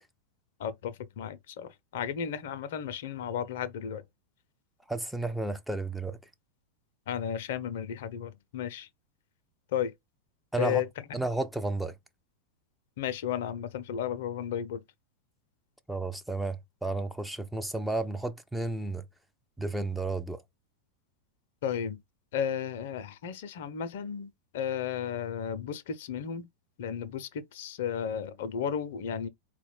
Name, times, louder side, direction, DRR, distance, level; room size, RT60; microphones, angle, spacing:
voice 1, 0.6-4.0 7.1-8.9 9.7-9.9 10.6-11.2 13.0-14.8 21.6-22.0 22.3-26.5 26.8-29.3, left 8 dB, 55° left, 0.5 m, -34 dB
voice 2, 4.9-6.2 10.5-10.8 11.1-11.9 15.9-19.0 19.6-20.4, right 2 dB, ahead, 0.3 m, -32 dB
4.1 x 2.2 x 4.2 m
figure-of-eight pair, 90°, 0 cm